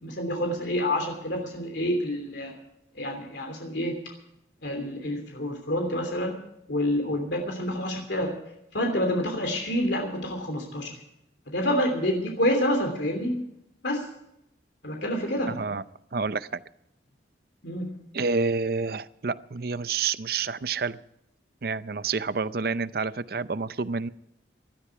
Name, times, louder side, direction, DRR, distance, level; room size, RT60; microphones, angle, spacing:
voice 1, 0.0-2.5 2.9-3.9 4.6-6.4 6.7-8.3 8.7-11.0 11.5-13.4 13.8-14.1 14.8-15.5 17.6-17.9, left 1 dB, 70° left, 3 dB, 3.1 m, -28 dB
voice 2, 15.5-15.8 16.1-16.6 18.1-21.0 21.6-24.1, right 4 dB, 55° right, 15 dB, 0.6 m, -28 dB
18.5 x 13.5 x 4.7 m, 0.78 s
head